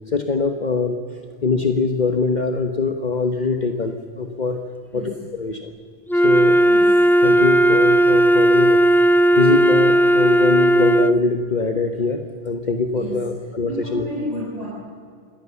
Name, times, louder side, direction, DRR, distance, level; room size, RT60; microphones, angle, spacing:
voice 1, 0.1-1.0 1.4-4.6 4.9-5.7 6.1-6.6 7.2-8.8 9.4-14.0, left 4 dB, 45° left, 5 dB, 1.3 m, -23 dB
Wind instrument woodwind instrument, 6.1-11.2, right 1 dB, 5° left, 0.3 m, -15 dB
voice 2, 6.6-7.0 12.9-13.3 13.6-14.7, equal, 40° right, -7 dB, 6.7 m, -31 dB
26.5 x 18.0 x 7.0 m, 2.2 s
omnidirectional pair, 1.0 m